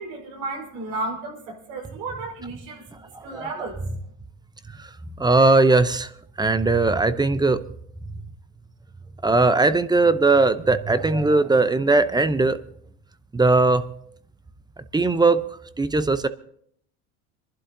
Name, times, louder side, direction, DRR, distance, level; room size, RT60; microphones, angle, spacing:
voice 1, 0.0-3.8, right 2 dB, 80° right, 1 dB, 5.1 m, -33 dB
voice 2, 3.1-3.7 5.2-6.1 6.4-7.6 9.2-12.6 13.3-13.8 14.9-15.5 15.8-16.3, right 3 dB, 10° right, 13 dB, 0.7 m, -19 dB
26.0 x 11.5 x 2.8 m, 0.65 s
supercardioid pair, 95°, 36 cm